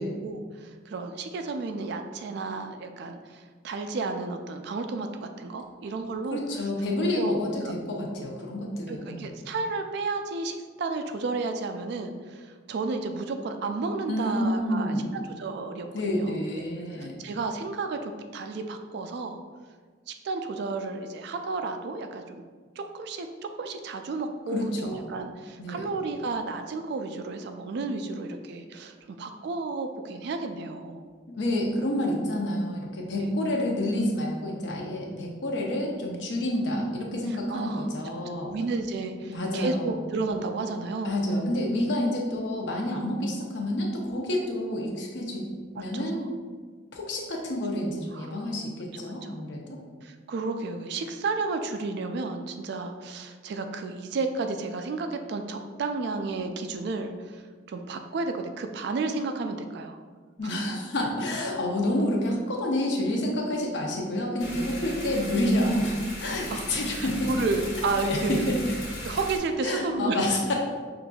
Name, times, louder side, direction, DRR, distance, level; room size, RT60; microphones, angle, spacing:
voice 1, 0.2-6.7 7.2-7.4 7.6-7.7 8.9-16.7 17.0-19.4 20.1-22.4 22.8-23.3 23.6-31.1 33.2-33.3 37.3-37.9 38.2-41.1 45.8-46.1 48.1-48.3 48.9-49.4 50.0-57.4 57.7-60.0 60.4-60.5 64.7-64.9 66.5-68.5 69.0-70.2, right 3 dB, 60° right, 6 dB, 0.3 m, -32 dB
voice 2, 6.3-9.3 14.1-15.1 15.9-17.2 24.5-25.0 25.6-25.9 31.3-38.5 39.2-40.0 41.0-45.5 45.7-46.4 46.9-49.8 60.4-67.3 68.0-68.6 69.6-70.5, left 1 dB, 65° left, 0 dB, 0.6 m, -29 dB
sound 1, 64.4-69.4, left 1 dB, 85° left, 1.2 m, -37 dB
5.8 x 2.5 x 2.3 m, 1.5 s
head